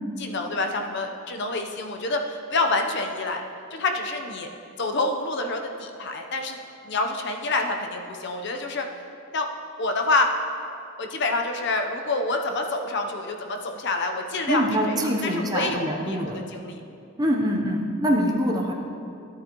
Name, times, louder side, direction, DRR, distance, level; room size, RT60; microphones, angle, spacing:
voice 1, 0.2-3.4 3.7-4.5 4.8-6.6 6.8-8.9 9.3-9.5 9.8-10.3 11.0-16.8 17.4-17.5, left 2 dB, 55° left, 4 dB, 0.7 m, -27 dB
voice 2, 14.5-16.4 17.2-18.7, equal, 20° right, 0 dB, 0.7 m, -24 dB
13.0 x 8.7 x 3.0 m, 2.6 s
head